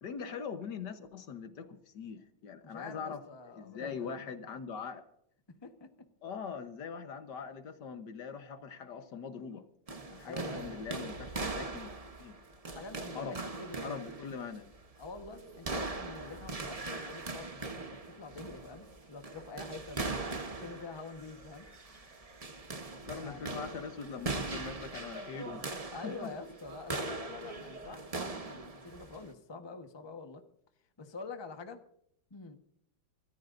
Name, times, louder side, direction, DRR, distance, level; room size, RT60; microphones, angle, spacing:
voice 1, 0.0-3.2 3.5-5.0 6.2-9.6 10.1-11.9 12.2-12.4 13.2-13.4 13.8-14.7 23.1-25.7 26.0-26.3, left 6 dB, 65° left, 9 dB, 1.6 m, -42 dB
voice 2, 2.6-4.2 5.5-5.9 10.2-10.8 12.7-14.1 15.0-20.0 20.5-21.7 23.2-23.7 25.9-30.4 31.0-31.8 32.3-32.6, left 3 dB, 15° left, 6 dB, 1.0 m, -46 dB
sound 1, 9.9-29.3, right 3 dB, 25° right, 0.8 m, -41 dB
24.5 x 14.0 x 2.6 m, 0.71 s
omnidirectional pair, 2.1 m